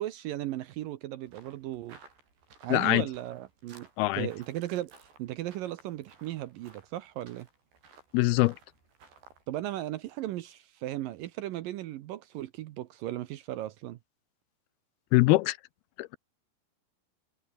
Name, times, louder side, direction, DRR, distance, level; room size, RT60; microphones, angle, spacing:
voice 1, 0.0-2.0 2.6-3.9 4.2-7.5 9.5-14.0, right 14 dB, 75° right, 2.2 m, -36 dB
sound 1, 1.3-9.4, right 4 dB, 90° right, 9.4 m, -58 dB
voice 2, 2.7-3.1 4.0-4.3 8.1-8.6 15.1-15.6 16.0-16.2, left 20 dB, 80° left, 2.4 m, -23 dB
omnidirectional pair, 4.7 m